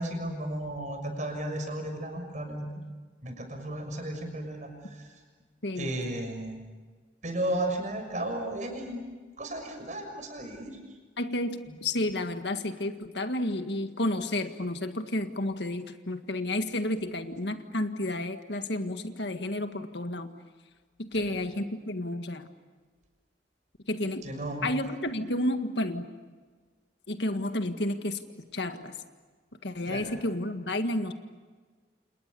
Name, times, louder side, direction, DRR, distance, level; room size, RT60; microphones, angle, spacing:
voice 1, 0.0-2.7 3.2-4.7 5.8-6.6 7.2-9.0 9.4-10.8 21.3-21.4 24.2-24.7 29.9-30.1, right 1 dB, 40° right, 4 dB, 6.4 m, -34 dB
voice 2, 5.6-5.9 11.2-20.3 21.0-22.5 23.9-24.3 24.6-26.1 27.1-28.2 28.5-28.9 29.6-31.1, left 1 dB, 70° left, 7 dB, 1.8 m, -31 dB
29.5 x 28.5 x 7.0 m, 1.4 s
head